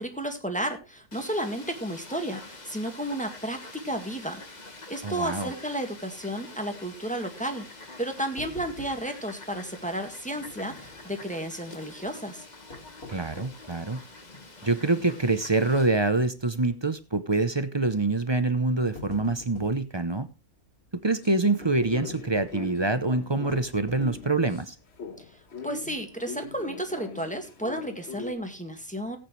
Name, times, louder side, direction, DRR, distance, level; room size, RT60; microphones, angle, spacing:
voice 1, 0.0-4.4 4.9-12.5 25.2-25.3 25.6-29.2, right 1 dB, 5° left, 1.8 m, -32 dB
Fowl, 1.1-15.9, left 2 dB, 30° left, 1.7 m, -46 dB
voice 2, 5.0-5.5 13.1-14.0 14.6-20.3 21.0-24.7, right 3 dB, 25° right, 0.6 m, -25 dB
sound 1, 8.4-9.3 9.6-9.7 10.4-11.1 12.5-13.7 14.3-14.4 15.0-15.3 15.6-15.7 16.8-17.1 18.0-18.2 18.6-19.9 21.6-22.7 23.5-24.5 25.0-25.1 25.5-25.6, left 3 dB, 85° left, 3.6 m, -46 dB
sound 2, 21.2-24.6 25.0-28.3, left 4 dB, 50° left, 1.5 m, -42 dB
17.5 x 8.9 x 3.2 m
omnidirectional pair, 1.5 m